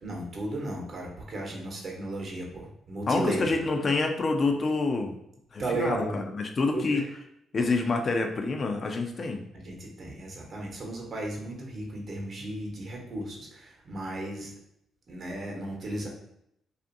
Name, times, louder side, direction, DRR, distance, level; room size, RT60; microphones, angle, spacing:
voice 1, 0.0-3.6 5.6-6.2 6.7-7.1 9.6-14.5 15.1-16.1, right 1 dB, 55° right, -1 dB, 0.8 m, -35 dB
voice 2, 3.1-5.2 5.5-7.0 7.5-9.5, left 3 dB, 50° left, 4 dB, 0.4 m, -27 dB
2.5 x 2.4 x 2.5 m, 0.77 s
supercardioid pair, 55°, 0 cm